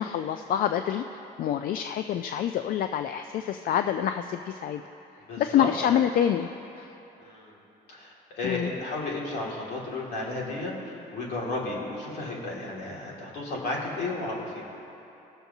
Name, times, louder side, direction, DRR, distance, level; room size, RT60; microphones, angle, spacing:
voice 1, 0.0-4.8 5.4-6.5 6.8-7.0 8.4-8.7, left 10 dB, 60° left, 8 dB, 0.4 m, -27 dB
voice 2, 5.3-6.0 7.2-7.6 7.9-14.6, left 2 dB, 75° left, -3 dB, 2.3 m, -33 dB
20.0 x 6.9 x 2.7 m, 2.9 s
cardioid pair, 110°, 17 cm